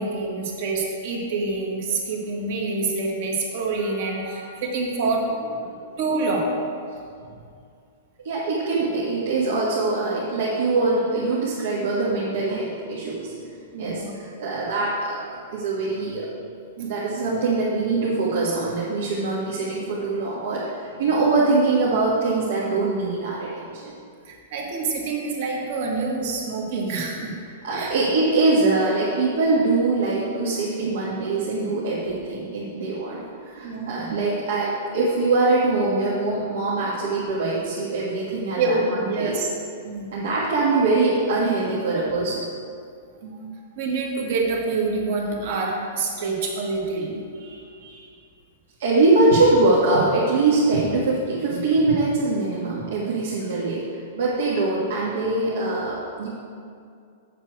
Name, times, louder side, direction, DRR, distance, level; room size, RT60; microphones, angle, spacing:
voice 1, 0.0-5.3 6.0-6.5 13.7-14.1 24.3-27.3 27.7-27.9 33.6-34.2 38.6-39.5 39.8-40.1 43.2-43.5 43.8-47.2 53.2-53.3, right 3 dB, 55° right, -1 dB, 1.7 m, -26 dB
voice 2, 8.2-13.3 13.8-15.2 15.5-16.3 16.8-23.9 27.6-33.2 33.5-39.4 40.1-42.4 47.4-47.6 47.8-48.1 48.8-53.9 54.2-56.3, right 3 dB, 70° right, -6 dB, 1.7 m, -23 dB
8.0 x 7.4 x 4.7 m, 2.3 s
hypercardioid pair, 160°, 0 cm